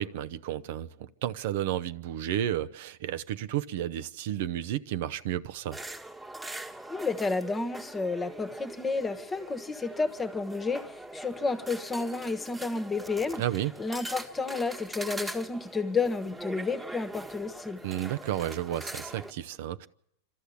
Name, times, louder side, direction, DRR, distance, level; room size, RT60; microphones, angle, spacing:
voice 1, 0.0-5.8 13.4-13.7 17.8-19.9, right 12 dB, 65° right, 0.7 m, -32 dB
sound 1, 5.7-19.3, right 1 dB, 10° right, 1.6 m, -42 dB
voice 2, 6.9-13.4 13.8-17.8, left 4 dB, 15° left, 1.3 m, -31 dB
26.5 x 13.0 x 8.4 m
supercardioid pair, 135°, 0 cm